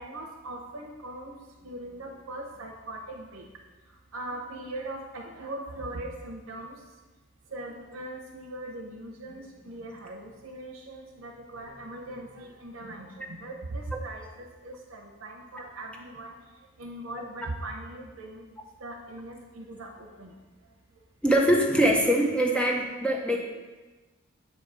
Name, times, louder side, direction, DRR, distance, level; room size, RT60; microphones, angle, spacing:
voice 1, 0.0-1.3 1.6-3.5 4.1-6.8 7.5-16.4 16.8-18.5 18.8-20.3, right 1 dB, 85° right, 0 dB, 0.7 m, -40 dB
voice 2, 21.2-23.4, right 1 dB, 5° left, 0 dB, 0.7 m, -23 dB
7.8 x 2.7 x 4.8 m, 1.2 s
head